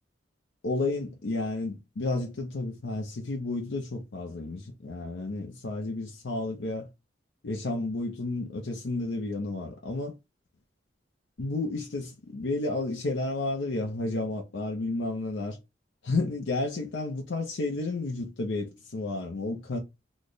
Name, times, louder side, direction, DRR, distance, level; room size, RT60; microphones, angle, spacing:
voice 1, 0.6-6.9 7.4-10.1 11.4-15.6 16.0-19.8, left 2 dB, 85° left, 0.6 m, -31 dB
3.2 x 2.1 x 3.8 m
head